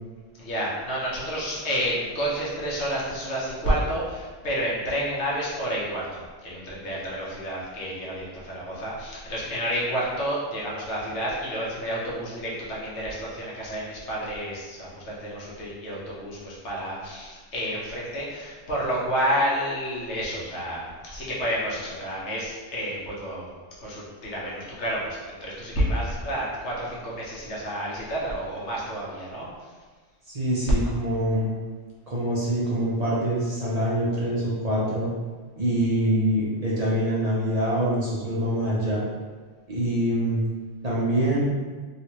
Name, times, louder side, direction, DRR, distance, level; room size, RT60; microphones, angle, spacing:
voice 1, 0.4-23.5 23.8-29.7, equal, 85° left, -5 dB, 1.3 m, -30 dB
voice 2, 30.3-31.5 32.1-35.1 35.6-39.0 39.7-40.4 40.8-41.4, equal, 40° right, -6 dB, 0.8 m, -25 dB
3.1 x 3.0 x 2.9 m, 1.4 s
omnidirectional pair, 1.1 m